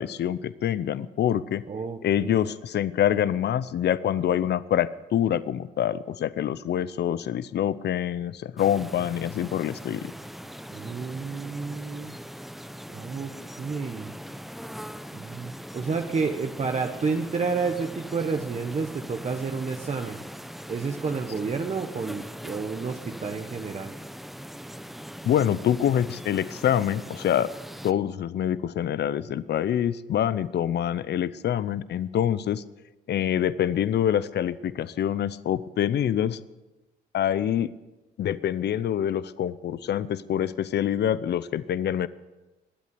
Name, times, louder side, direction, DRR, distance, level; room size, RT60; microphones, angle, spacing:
voice 1, 0.0-1.6 2.0-10.1 25.2-27.5 27.8-32.6 33.1-36.4 37.1-37.7 38.2-42.1, left 10 dB, 60° left, 17 dB, 0.7 m, -26 dB
voice 2, 1.7-2.4 10.7-12.1 12.9-13.3 13.6-14.1 15.1-20.2 20.7-23.9, right 4 dB, 35° right, 5 dB, 1.0 m, -30 dB
sound 1, 8.6-27.9, equal, ahead, 0.7 m, -41 dB
21.5 x 8.3 x 6.9 m, 1.1 s
cardioid pair, 90°, 20 cm